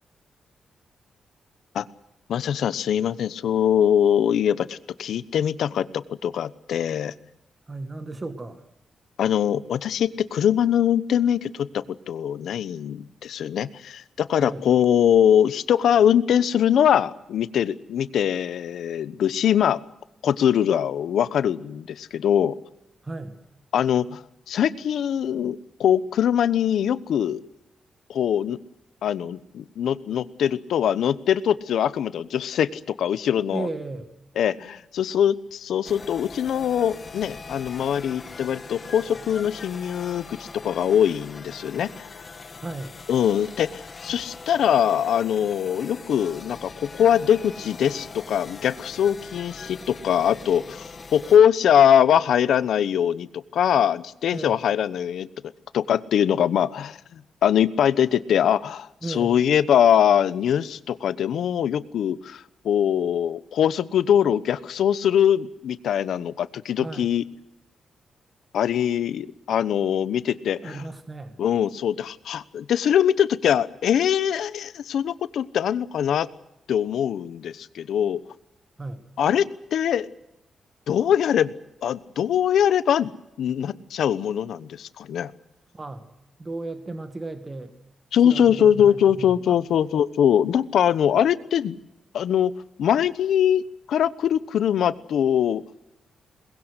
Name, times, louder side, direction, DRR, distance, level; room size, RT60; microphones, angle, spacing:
voice 1, 2.3-7.1 9.2-19.8 20.2-22.5 23.7-24.2 24.5-27.4 28.1-28.6 29.0-33.7 34.4-40.4 40.6-42.1 43.1-53.3 53.5-55.3 55.7-67.2 68.5-70.8 71.4-76.3 76.7-78.2 79.2-80.1 80.9-81.5 81.8-83.1 83.4-85.3 88.1-91.8 92.1-92.5 92.8-93.6 93.9-95.6, left 9 dB, 80° left, 16 dB, 1.0 m, -22 dB
voice 2, 7.7-8.6 14.4-14.6 23.0-23.4 33.5-34.1 42.6-43.0 54.3-54.6 59.0-59.4 66.8-67.1 70.6-71.4 78.8-79.0 85.7-86.1 86.4-87.7 88.2-89.6, right 2 dB, 20° right, 9 dB, 1.9 m, -35 dB
sound 1, 35.8-51.4, left 4 dB, 30° left, 1.8 m, -41 dB
22.5 x 21.0 x 8.1 m, 0.86 s
wide cardioid pair, 160°, 0 cm